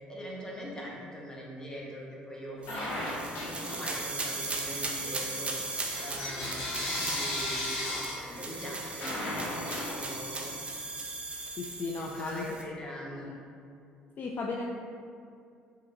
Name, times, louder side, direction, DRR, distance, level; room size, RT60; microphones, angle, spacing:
voice 1, 0.1-2.9 3.4-5.6 5.9-9.6 9.9-10.5 12.0-13.3, equal, 15° left, -5 dB, 1.1 m, -42 dB
Bell / Coin (dropping), 2.6-4.2 4.6-10.5, left 1 dB, 70° left, 1.1 m, -36 dB
sound 1, 2.6-12.6, right 3 dB, 25° right, 0.7 m, -38 dB
voice 2, 11.6-12.7 13.1-13.4 14.2-14.6, left 3 dB, 45° left, 0 dB, 0.3 m, -36 dB
4.8 x 3.0 x 2.6 m, 2.4 s
hypercardioid pair, 60°, 4 cm